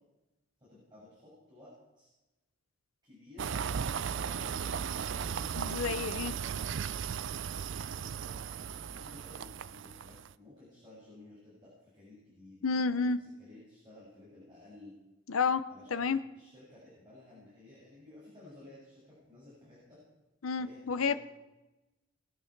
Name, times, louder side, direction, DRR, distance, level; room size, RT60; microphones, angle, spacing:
voice 1, 0.6-2.1 3.0-6.6 7.8-14.9 15.7-20.0 20.6-21.2, left 2 dB, 20° right, -8 dB, 6.6 m, -55 dB
sound 1, 3.4-10.3, right 7 dB, 60° right, 0.4 m, -36 dB
voice 2, 5.6-6.3 12.6-13.2 15.3-15.6 15.9-16.2 20.4-21.2, left 5 dB, 85° left, 11 dB, 0.7 m, -30 dB
21.0 x 9.4 x 5.9 m, 1.0 s
head